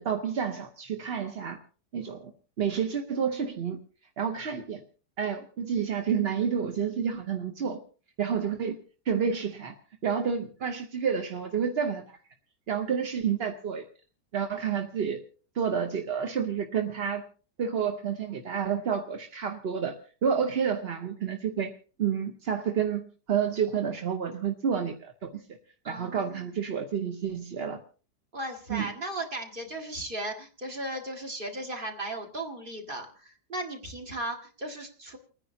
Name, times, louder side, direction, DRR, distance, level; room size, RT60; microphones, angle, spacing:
voice 1, 0.0-1.6 1.9-2.3 2.6-3.8 4.2-4.8 5.2-7.8 8.2-8.8 9.1-9.7 10.0-12.0 12.7-13.8 14.3-15.2 15.5-17.2 17.6-20.0 20.2-21.7 22.0-25.4 25.9-27.8 28.7-28.9, right 7 dB, 45° right, 4 dB, 0.9 m, -29 dB
voice 2, 25.8-26.5 28.3-35.2, right 1 dB, 30° right, 2 dB, 2.1 m, -36 dB
30.0 x 10.0 x 2.8 m, 0.39 s
omnidirectional pair, 1.8 m